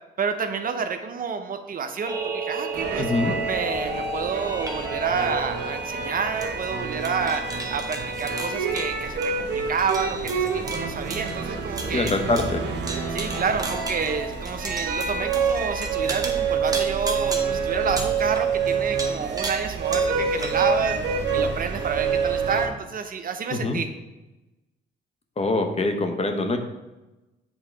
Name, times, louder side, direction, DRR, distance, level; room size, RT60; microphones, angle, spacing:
voice 1, 0.2-3.1 3.4-12.1 13.1-21.0 21.3-23.9, right 5 dB, 45° right, 7 dB, 0.6 m, -29 dB
sound 1, 2.1-20.5, right 3 dB, 20° right, 1.1 m, -35 dB
sound 2, 2.7-22.7, right 5 dB, 60° right, 1.1 m, -27 dB
voice 2, 3.0-3.3 11.9-12.6 23.5-23.8 25.4-26.6, left 2 dB, 30° left, 5 dB, 0.9 m, -24 dB
8.0 x 3.7 x 4.5 m, 1.0 s
cardioid pair, 90°, 20 cm